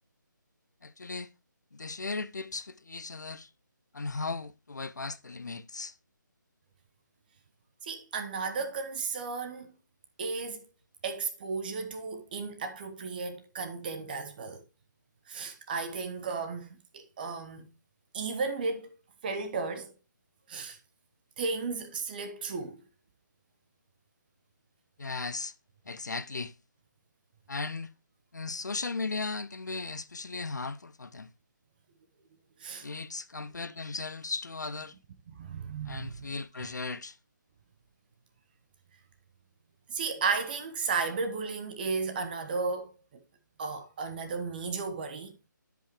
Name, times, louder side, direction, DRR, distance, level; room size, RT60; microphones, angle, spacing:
voice 1, 0.8-1.3 1.7-3.5 3.9-5.9 25.0-25.5 25.9-26.5 27.5-27.9 28.3-31.3 32.8-34.9 35.8-37.2, left 3 dB, 60° left, 0.7 m, -37 dB
voice 2, 7.8-9.7 10.2-10.6 11.0-14.6 15.3-17.7 18.1-18.9 19.2-19.9 20.5-20.8 21.4-22.8 32.6-32.9 35.3-36.4 39.9-43.2 43.6-45.5, right 4 dB, 25° right, 1.1 m, -34 dB
12.5 x 5.3 x 3.1 m
figure-of-eight pair, 150°, 11 cm